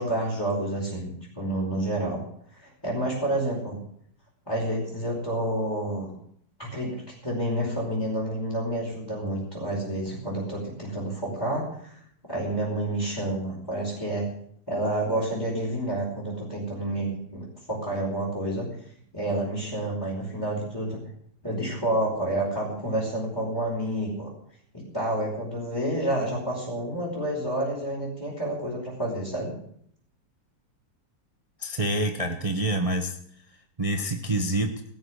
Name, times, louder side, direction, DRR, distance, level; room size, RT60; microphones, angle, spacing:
voice 1, 0.0-2.2 2.5-3.8 4.5-6.1 6.6-12.0 12.3-14.3 14.7-18.7 19.1-21.0 21.4-24.3 24.7-29.5, right 1 dB, 10° left, -7 dB, 5.1 m, -29 dB
voice 2, 31.6-33.2 33.8-34.7, right 1 dB, 20° right, 4 dB, 1.1 m, -26 dB
17.5 x 7.2 x 9.8 m, 0.66 s
omnidirectional pair, 2.0 m